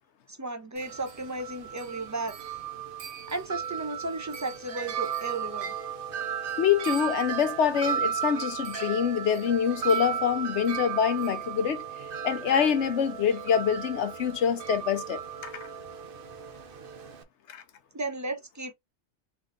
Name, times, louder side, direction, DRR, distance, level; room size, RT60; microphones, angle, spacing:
voice 1, 0.3-2.3 3.3-5.7 17.9-18.7, right 2 dB, 20° right, 0.6 m, -34 dB
Wind chime, 0.8-17.2, right 8 dB, 55° right, 0.9 m, -35 dB
voice 2, 6.6-11.8 12.2-15.7 17.5-17.6, left 8 dB, 80° left, 1.1 m, -26 dB
3.9 x 3.4 x 3.6 m
omnidirectional pair, 1.2 m